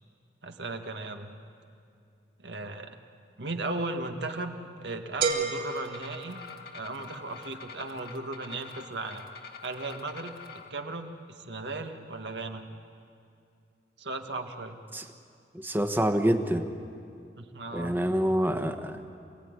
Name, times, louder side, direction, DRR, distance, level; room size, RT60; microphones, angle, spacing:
voice 1, 0.4-1.3 2.4-3.0 3.4-6.4 6.7-9.2 9.6-10.4 10.7-12.7 14.0-14.8 17.4-18.2, right 2 dB, 75° right, 5 dB, 1.7 m, -36 dB
sound 1, 5.2-7.1, right 5 dB, 55° right, 3.2 m, -32 dB
sound 2, 5.5-10.7, left 6 dB, 60° left, 1.6 m, -46 dB
voice 2, 15.5-16.7 17.7-19.1, equal, 10° right, 7 dB, 1.2 m, -26 dB
27.0 x 17.5 x 9.7 m, 2.4 s
head